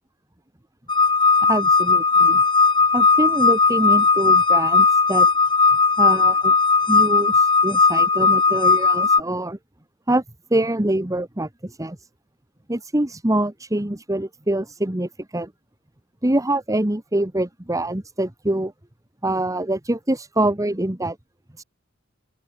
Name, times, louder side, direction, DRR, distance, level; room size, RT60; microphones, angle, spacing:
sound 1, 0.9-9.2, left 4 dB, 25° left, 1.7 m, -17 dB
voice 1, 1.4-2.4 2.9-5.3 6.0-6.5 6.9-9.6 10.1-10.2 10.5-12.0 12.7-15.5 16.2-18.7 19.2-21.2 21.6-21.7, right 1 dB, 15° right, 1.4 m, -24 dB
head